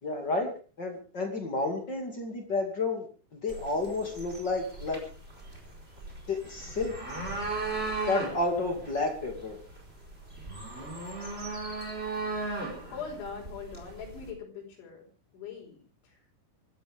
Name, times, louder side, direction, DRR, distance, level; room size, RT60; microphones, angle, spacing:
voice 1, 0.0-0.5 0.8-3.1 3.3-5.0 6.3-6.9 8.1-9.6, left 2 dB, 35° left, 3 dB, 1.8 m, -31 dB
sound 1, 3.5-14.3, right 3 dB, 15° right, 4.2 m, -37 dB
voice 2, 12.9-15.0 15.3-16.2, left 6 dB, 70° left, 0 dB, 7.4 m, -42 dB
25.0 x 14.0 x 3.6 m, 0.37 s
omnidirectional pair, 5.6 m